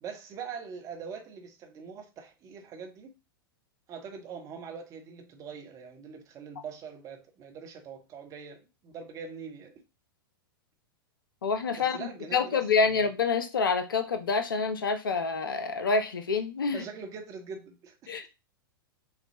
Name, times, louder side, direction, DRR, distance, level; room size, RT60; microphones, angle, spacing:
voice 1, 0.0-3.1 3.9-9.8 11.8-13.0 16.7-18.1, right 6 dB, 25° right, 1.0 m, -43 dB
voice 2, 11.4-16.8 18.1-18.3, left 4 dB, 65° left, 0.7 m, -27 dB
6.5 x 2.3 x 2.9 m
figure-of-eight pair, 100°, 12 cm